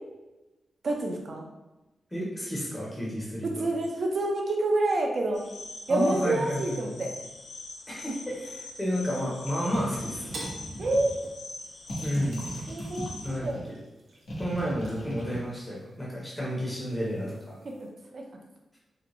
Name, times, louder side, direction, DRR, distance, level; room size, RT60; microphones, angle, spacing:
voice 1, 0.8-1.5 3.4-5.4 5.9-7.1 10.8-11.1 12.7-13.6 18.1-18.2, right 2 dB, 50° right, 1 dB, 0.6 m, -28 dB
voice 2, 2.1-3.7 5.9-7.0 7.9-10.3 12.0-12.4 13.2-13.8 14.3-17.6, equal, 10° left, -6 dB, 0.8 m, -31 dB
sound 1, 5.3-13.4, left 2 dB, 65° left, 0.5 m, -43 dB
sound 2, 9.7-11.3 11.9-13.6 14.3-15.4, equal, 85° left, 1.3 m, -38 dB
sound 3, 10.3-10.7 11.9-16.1 16.5-17.9, right 2 dB, 80° right, 0.8 m, -46 dB
3.9 x 2.2 x 3.0 m, 1.0 s
wide cardioid pair, 140°, 0 cm